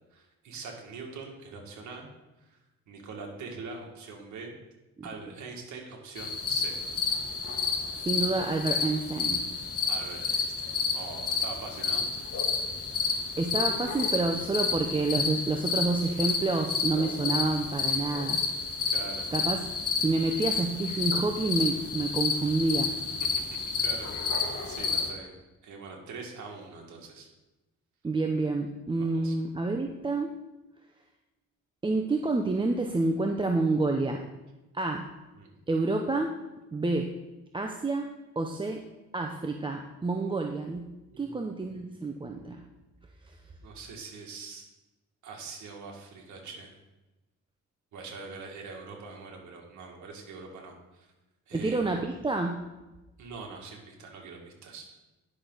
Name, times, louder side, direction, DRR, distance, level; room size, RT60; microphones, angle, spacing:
voice 1, 0.1-2.1 2.4-2.6 2.9-4.5 5.0-6.8 9.9-12.1 12.9-13.2 18.9-19.3 23.2-24.1 24.6-25.3 25.6-27.3 29.0-29.4 35.4-35.5 41.1-41.9 43.6-44.7 45.2-46.7 47.9-51.1 51.5-52.0 53.2-55.0, right 4 dB, 75° right, 1 dB, 2.0 m, -43 dB
sound 1, 6.2-25.1, left 5 dB, 50° left, 1.4 m, -30 dB
voice 2, 8.0-9.4 13.4-18.4 19.3-19.6 20.0-22.9 28.0-30.3 31.8-34.2 34.7-35.0 35.7-36.3 36.7-37.1 37.5-38.1 38.4-38.8 39.1-40.9 41.2-42.6 51.5-52.6, right 3 dB, 15° right, 3 dB, 0.6 m, -28 dB
10.0 x 6.1 x 3.9 m, 1.1 s
cardioid pair, 90°, 30 cm